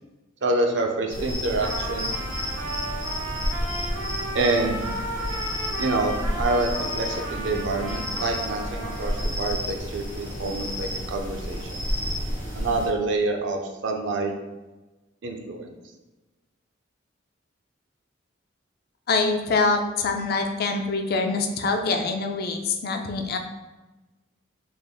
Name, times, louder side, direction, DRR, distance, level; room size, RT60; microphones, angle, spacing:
voice 1, 0.4-2.1 4.3-4.8 5.8-11.9 12.6-14.3 15.2-15.7, right 2 dB, 70° right, 2 dB, 0.5 m, -27 dB
sound 1, 1.1-12.9, equal, 40° right, 1.1 m, -31 dB
Trumpet, 1.6-9.4, right 1 dB, 90° right, 0.9 m, -35 dB
voice 2, 19.1-23.4, left 3 dB, 50° left, 5 dB, 0.4 m, -25 dB
3.5 x 3.4 x 2.2 m, 1.1 s
head